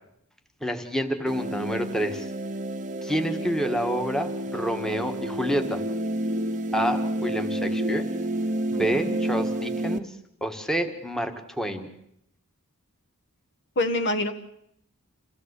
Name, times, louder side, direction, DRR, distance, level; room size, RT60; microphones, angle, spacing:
voice 1, 0.6-2.3 3.0-5.8 6.7-8.1 8.7-10.1 10.4-11.9, equal, ahead, 5 dB, 1.6 m, -28 dB
sound 1, 1.3-10.0, right 1 dB, 35° right, 0.9 m, -30 dB
voice 2, 8.7-9.2 13.8-14.3, left 1 dB, 55° left, 8 dB, 1.4 m, -26 dB
27.0 x 16.0 x 8.3 m, 0.75 s
head